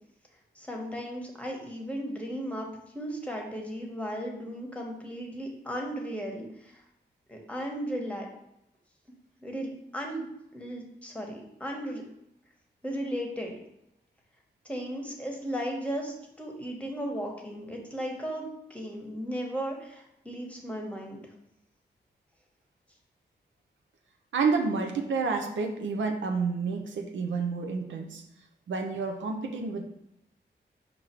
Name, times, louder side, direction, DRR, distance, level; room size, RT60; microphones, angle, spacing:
voice 1, 0.5-2.7 2.9-6.8 7.3-8.3 9.4-10.3 10.5-12.0 12.8-13.5 14.6-21.2, equal, 5° left, 0 dB, 1.1 m, -35 dB
voice 2, 24.3-28.2 28.7-29.8, right 4 dB, 85° right, 4 dB, 0.6 m, -29 dB
4.7 x 2.6 x 4.4 m, 0.82 s
cardioid pair, 55°, 19 cm